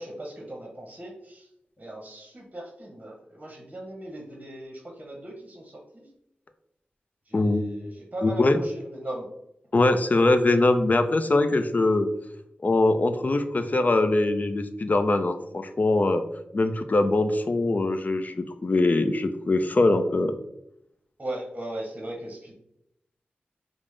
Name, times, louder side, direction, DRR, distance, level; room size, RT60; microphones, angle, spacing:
voice 1, 0.0-1.5 1.8-6.1 7.3-9.3 21.2-22.5, right 1 dB, 35° right, 0 dB, 0.8 m, -38 dB
voice 2, 7.3-7.6 8.2-8.6 9.7-12.1 12.6-16.2 16.5-20.3, left 2 dB, 45° left, 8 dB, 0.4 m, -22 dB
5.0 x 2.0 x 3.2 m, 0.78 s
cardioid pair, 50°, 4 cm